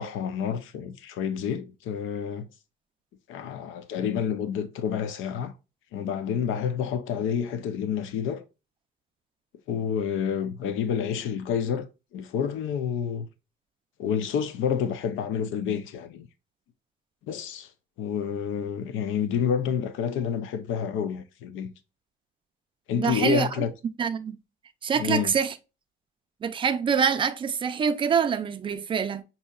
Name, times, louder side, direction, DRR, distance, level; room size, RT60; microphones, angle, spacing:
voice 1, 0.0-2.5 3.3-5.5 5.9-8.4 9.7-11.9 12.1-13.3 14.0-16.3 17.3-17.7 18.0-21.7 22.9-23.7 25.0-25.4, left 8 dB, 80° left, 0.5 m, -29 dB
voice 2, 23.0-23.6 24.0-24.4 24.8-25.5 26.4-29.2, right 6 dB, 25° right, 0.3 m, -25 dB
5.3 x 2.7 x 2.2 m
cardioid pair, 155°, 20 cm